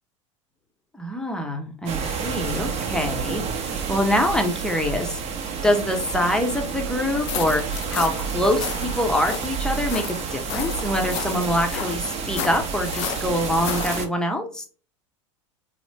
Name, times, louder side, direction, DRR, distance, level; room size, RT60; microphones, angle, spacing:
voice 1, 0.9-5.2 5.6-7.6 7.9-14.6, left 1 dB, 5° left, 3 dB, 0.7 m, -25 dB
sound 1, 1.9-14.1, right 6 dB, 40° right, 0.7 m, -30 dB
sound 2, 7.1-14.1, left 9 dB, 65° left, 0.4 m, -33 dB
3.0 x 2.0 x 3.1 m, 0.38 s
hypercardioid pair, 90°, 16 cm